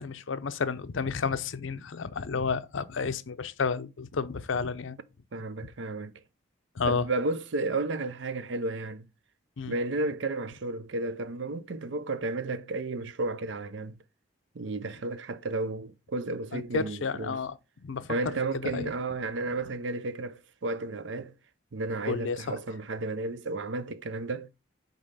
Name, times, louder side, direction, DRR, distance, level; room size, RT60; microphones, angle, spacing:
voice 1, 0.0-5.0 6.8-7.0 9.6-9.8 16.5-18.1 18.7-18.9 22.1-22.6, left 5 dB, 80° left, 0.6 m, -31 dB
voice 2, 5.3-6.1 6.9-9.1 9.7-14.0 14.5-17.4 18.1-21.3 21.7-24.5, right 2 dB, 70° right, 0.6 m, -32 dB
5.4 x 4.1 x 5.5 m
head